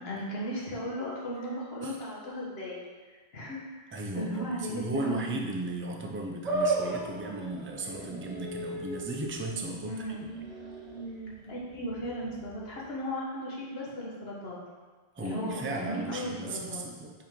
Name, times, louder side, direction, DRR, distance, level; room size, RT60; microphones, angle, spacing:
voice 1, 0.0-2.8 3.3-5.4 9.9-10.2 11.5-14.6 15.2-16.8, equal, 70° left, -4 dB, 1.6 m, -36 dB
voice 2, 3.9-10.3 15.2-17.1, right 2 dB, 15° right, 1 dB, 0.5 m, -36 dB
sound 1, 6.4-12.9, right 2 dB, 40° right, 0.8 m, -36 dB
5.8 x 3.9 x 5.2 m, 1.4 s
omnidirectional pair, 1.1 m